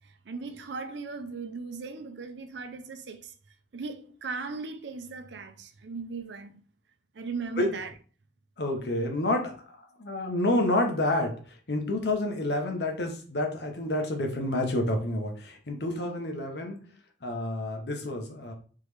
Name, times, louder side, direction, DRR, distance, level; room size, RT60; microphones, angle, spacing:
voice 1, 0.3-3.3 3.7-6.6 7.2-7.9, right 4 dB, 75° right, 0.5 m, -37 dB
voice 2, 8.6-9.5 10.0-11.3 11.7-16.8 17.2-18.5, left 1 dB, 65° left, 0.9 m, -28 dB
3.7 x 3.1 x 3.3 m
head